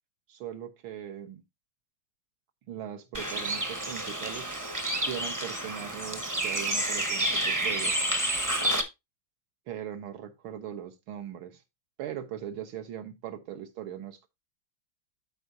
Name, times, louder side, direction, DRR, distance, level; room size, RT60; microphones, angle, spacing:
voice 1, 0.3-1.4 2.7-4.5 5.0-8.0 9.7-11.6 12.0-14.3, right 10 dB, 80° right, 1.9 m, -40 dB
Bird, 3.1-8.8, right 1 dB, 15° right, 0.7 m, -29 dB
13.0 x 4.8 x 2.7 m
omnidirectional pair, 2.2 m